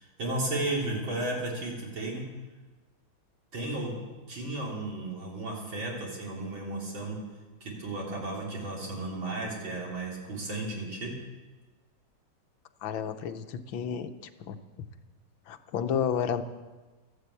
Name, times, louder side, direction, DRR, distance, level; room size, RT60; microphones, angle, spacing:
voice 1, 0.0-2.3 3.5-3.9 4.3-7.2 7.6-11.1, right 2 dB, 80° right, -3 dB, 4.4 m, -34 dB
voice 2, 12.8-14.1 14.4-14.6 15.5-16.4, left 8 dB, 80° left, 9 dB, 1.6 m, -31 dB
13.5 x 12.0 x 8.4 m, 1.3 s
omnidirectional pair, 2.1 m